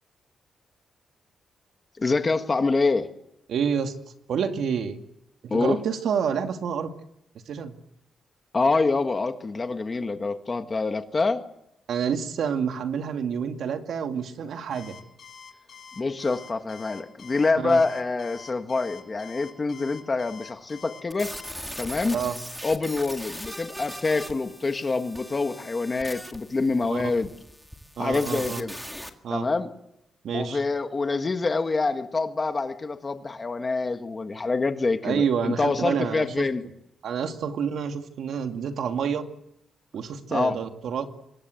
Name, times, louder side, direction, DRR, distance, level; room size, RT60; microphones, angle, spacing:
voice 1, 2.0-3.1 5.5-5.8 8.5-11.4 16.0-21.3 21.8-22.2 22.6-27.3 28.0-28.8 29.3-29.7 30.3-36.6 40.3-40.5, left 3 dB, 25° left, 7 dB, 1.6 m, -26 dB
voice 2, 3.5-3.9 4.3-5.0 5.4-6.9 7.5-7.8 11.9-15.0 17.6-17.8 22.1-22.4 26.9-27.0 28.0-28.6 29.2-29.5 30.2-30.6 35.0-36.4 37.0-39.2 39.9-41.1, right 7 dB, 70° right, 6 dB, 2.3 m, -28 dB
Alarm, 14.7-21.5, left 7 dB, 50° left, 6.9 m, -46 dB
sound 1, 21.1-29.1, equal, ahead, 1.8 m, -40 dB
25.5 x 21.0 x 7.9 m, 0.82 s
wide cardioid pair, 175°, 0 cm